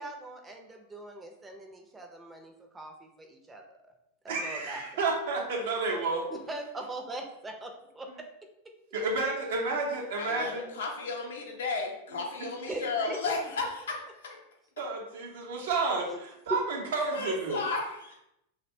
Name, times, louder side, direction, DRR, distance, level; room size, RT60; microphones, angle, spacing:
voice 1, 0.0-3.6 4.2-5.0 6.3-8.1 12.6-13.3 16.1-16.2, right 2 dB, 15° right, 3 dB, 0.5 m, -41 dB
voice 2, 4.3-6.3 8.9-10.8 12.4-12.5 14.8-17.7, right 3 dB, 70° right, -1 dB, 0.7 m, -31 dB
voice 3, 10.2-14.0 14.2-14.4 17.1-18.2, left 3 dB, 80° left, 1 dB, 0.6 m, -34 dB
2.6 x 2.1 x 2.6 m, 0.83 s
hypercardioid pair, 100°, 0 cm